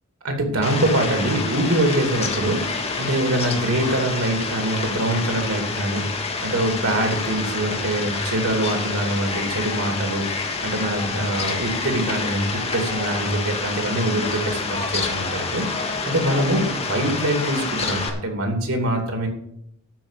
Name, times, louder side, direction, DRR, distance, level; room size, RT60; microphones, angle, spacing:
voice 1, 0.2-2.7 3.0-6.0 6.4-10.3 10.6-15.6 16.0-19.3, right 1 dB, 85° right, 4 dB, 2.6 m, -24 dB
Fowl, 0.6-18.1, left 4 dB, 30° left, 1.6 m, -28 dB
12.0 x 4.9 x 8.4 m, 0.74 s
head